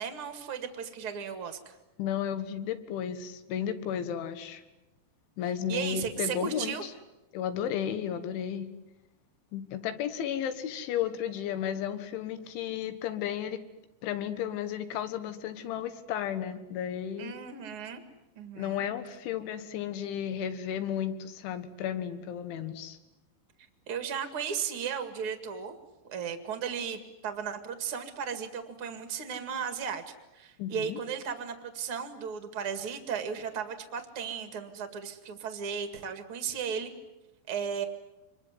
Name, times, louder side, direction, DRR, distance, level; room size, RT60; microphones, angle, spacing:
voice 1, 0.0-1.8 5.7-6.9 17.2-18.0 18.4-18.8 23.9-25.8 26.1-30.0 30.3-36.9 37.5-37.8, right 7 dB, 45° right, 8 dB, 1.9 m, -35 dB
voice 2, 2.0-4.6 5.4-6.9 7.3-8.7 9.5-13.6 14.0-17.3 18.6-23.0 30.6-31.0, left 9 dB, 80° left, 11 dB, 3.9 m, -33 dB
26.5 x 22.5 x 9.7 m, 1.0 s
omnidirectional pair, 5.4 m